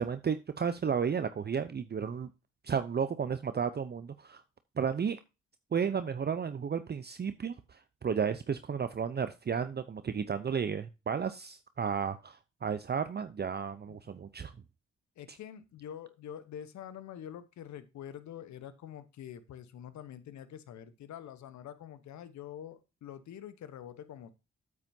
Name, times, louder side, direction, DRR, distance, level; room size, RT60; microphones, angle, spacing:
voice 1, 0.0-2.3 2.6-4.4 4.8-5.2 5.7-14.5, right 6 dB, 35° right, 0.7 m, -33 dB
voice 2, 13.9-14.2 15.2-24.3, left 10 dB, 75° left, 1.0 m, -46 dB
8.6 x 8.5 x 2.7 m
supercardioid pair, 45°, 29 cm